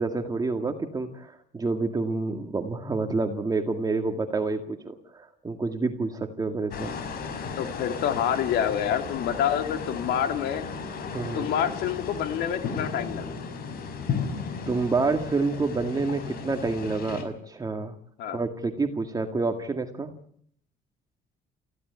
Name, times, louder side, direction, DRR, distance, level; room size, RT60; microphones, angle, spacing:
voice 1, 0.0-6.9 11.1-11.5 14.7-17.9 18.3-20.1, right 3 dB, 20° right, 5 dB, 2.0 m, -28 dB
sound 1, 6.7-17.2, left 5 dB, 65° left, 5.5 m, -35 dB
voice 2, 7.6-10.7 11.3-13.3 18.2-18.4, left 9 dB, 85° left, 7 dB, 2.8 m, -27 dB
19.0 x 16.0 x 9.7 m, 0.63 s
cardioid pair, 110°, 17 cm